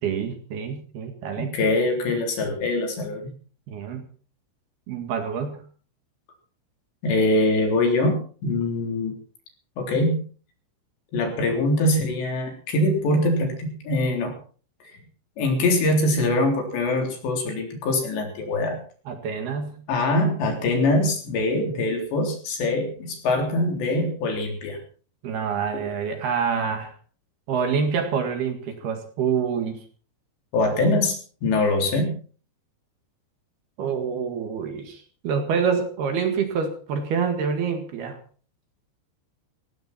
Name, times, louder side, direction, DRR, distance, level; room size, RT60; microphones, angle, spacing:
voice 1, 0.0-1.5 3.7-4.0 4.9-5.6 19.1-19.8 25.2-26.9 27.5-29.8 33.8-38.2, right 6 dB, 60° right, 6 dB, 3.6 m, -27 dB
voice 2, 1.4-3.3 7.0-9.2 9.8-10.3 11.1-14.4 14.8-14.9 15.4-18.8 19.9-24.8 25.7-25.8 30.5-32.2, left 2 dB, 65° left, 3 dB, 5.8 m, -23 dB
18.5 x 17.0 x 4.4 m, 0.41 s
omnidirectional pair, 5.6 m